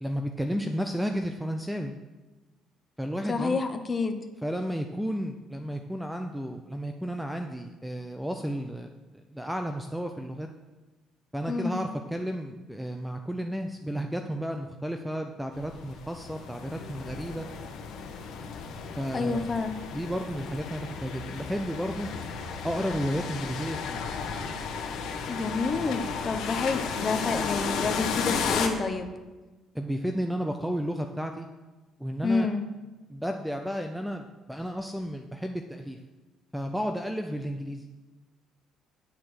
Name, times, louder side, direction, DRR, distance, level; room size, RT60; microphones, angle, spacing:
voice 1, 0.0-1.9 3.0-3.6 4.4-10.5 11.3-17.5 19.0-19.4 19.9-22.1 22.6-24.0 29.7-31.5 32.0-32.5 33.1-36.0 36.5-37.9, equal, ahead, 5 dB, 0.5 m, -32 dB
voice 2, 3.3-4.2 11.5-11.8 19.1-19.7 25.3-29.1 32.2-32.6, left 4 dB, 20° left, 7 dB, 0.9 m, -28 dB
sound 1, 15.5-28.7, left 5 dB, 65° left, 1.4 m, -34 dB
9.3 x 7.5 x 6.4 m, 1.2 s
cardioid pair, 165°, 0 cm